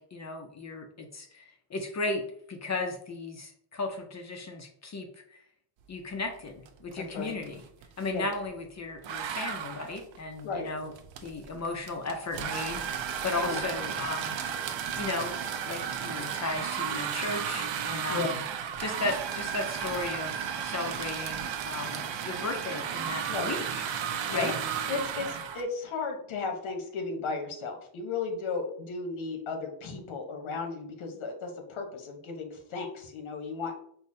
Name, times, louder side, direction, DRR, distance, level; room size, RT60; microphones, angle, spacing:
voice 1, 0.0-5.4 5.9-7.6 8.0-10.9 11.2-14.4 15.0-15.4 15.7-18.4 18.8-23.8 24.3-24.5, left 3 dB, 35° left, 4 dB, 0.5 m, -35 dB
sound 1, 6.7-6.9 7.2-8.5 9.0-25.6, right 8 dB, 70° right, 0.5 m, -34 dB
voice 2, 7.0-7.3 8.1-8.3 10.4-10.7 13.4-13.6 18.1-18.3 23.3-23.5 24.3-24.6 24.9-33.7, left 4 dB, 70° left, 4 dB, 1.0 m, -34 dB
5.5 x 2.1 x 2.6 m, 0.65 s
cardioid pair, 115°, 48 cm